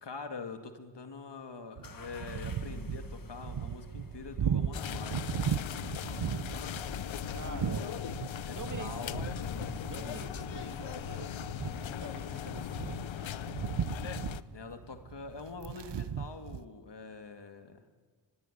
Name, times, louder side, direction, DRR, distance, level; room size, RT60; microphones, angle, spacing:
voice 1, 0.0-6.9 7.6-8.0 8.4-9.4 14.5-17.9, left 4 dB, 60° left, 7 dB, 2.2 m, -45 dB
sound 1, 1.8-14.7, left 4 dB, 45° left, 1.4 m, -50 dB
sound 2, 1.8-16.6, right 8 dB, 65° right, 1.0 m, -38 dB
sound 3, 4.7-14.4, left 10 dB, 80° left, 0.8 m, -39 dB
voice 2, 7.3-7.9 8.5-9.0 9.8-13.4, right 3 dB, 40° right, 6 dB, 2.9 m, -46 dB
23.5 x 21.0 x 9.9 m, 1.5 s
cardioid pair, 55°, 46 cm